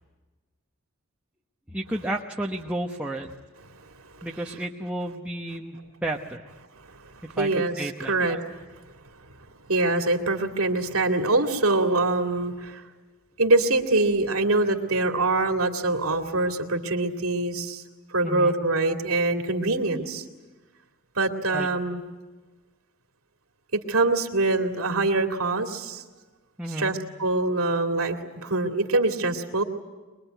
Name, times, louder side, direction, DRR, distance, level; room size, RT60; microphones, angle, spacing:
voice 1, 1.7-3.3 4.2-6.4 7.2-8.1 18.2-18.5 21.5-21.7 26.6-26.9, right 1 dB, 5° right, 0 dB, 1.1 m, -32 dB
voice 2, 7.3-8.4 9.7-12.8 13.4-17.8 18.1-20.2 21.1-22.0 23.9-26.0 26.8-29.6, right 2 dB, 80° right, 4 dB, 2.5 m, -24 dB
24.5 x 21.5 x 9.3 m, 1.3 s
head